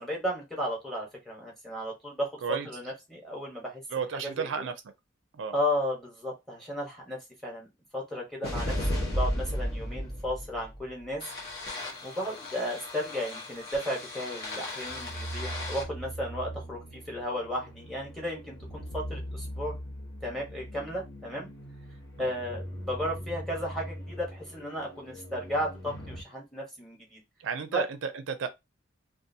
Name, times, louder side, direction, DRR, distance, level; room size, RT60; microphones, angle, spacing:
voice 1, 0.0-3.8 4.2-4.7 5.5-7.7 7.9-11.2 12.0-19.8 20.2-21.5 22.2-27.2 27.7-27.8, equal, ahead, 1.1 m, -34 dB
voice 2, 3.9-4.7 5.3-5.5 22.2-22.3 27.4-28.5, right 6 dB, 75° right, 0.4 m, -32 dB
sound 1, 8.4-26.2, equal, 55° left, 1.1 m, -37 dB
2.6 x 2.3 x 2.6 m
head